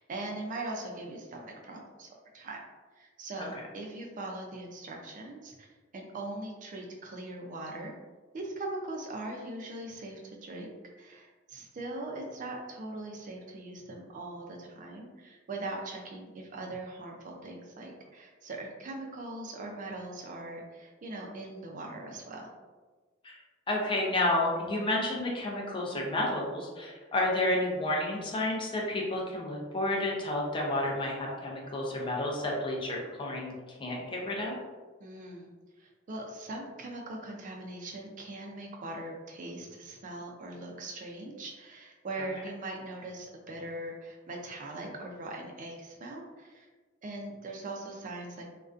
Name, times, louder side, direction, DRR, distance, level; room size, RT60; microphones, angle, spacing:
voice 1, 0.0-2.6 3.0-5.7 5.9-7.9 8.3-22.5 35.0-35.5 35.8-46.7 47.0-48.5, right 2 dB, 40° right, 0 dB, 0.3 m, -41 dB
voice 2, 23.7-33.5 33.8-34.5, left 1 dB, 25° left, -2 dB, 0.4 m, -30 dB
2.4 x 2.1 x 2.4 m, 1.3 s
head